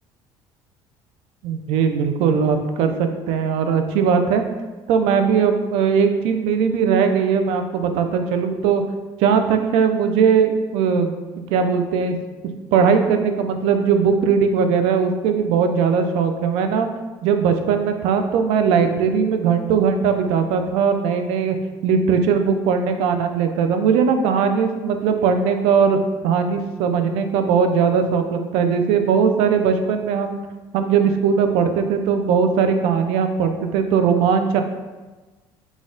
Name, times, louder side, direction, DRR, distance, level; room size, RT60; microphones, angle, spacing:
voice 1, 1.4-4.4 4.9-8.8 9.2-11.1 11.5-12.2 12.7-16.9 17.2-21.6 21.8-26.0 26.2-30.4 30.7-34.6, right 6 dB, 80° right, 6 dB, 0.4 m, -19 dB
4.1 x 2.3 x 3.7 m, 1.2 s
cardioid pair, 110°, 10 cm